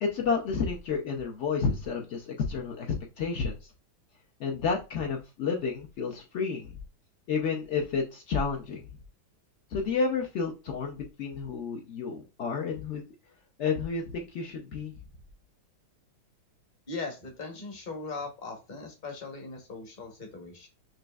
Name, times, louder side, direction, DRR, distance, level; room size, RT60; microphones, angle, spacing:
voice 1, 0.0-2.9 3.2-3.7 4.4-6.8 7.3-8.8 9.7-13.0 13.6-14.9, left 5 dB, 85° left, 0 dB, 0.6 m, -30 dB
voice 2, 16.9-20.7, left 3 dB, 35° left, 3 dB, 0.7 m, -39 dB
6.2 x 2.6 x 2.3 m, 0.29 s
omnidirectional pair, 2.0 m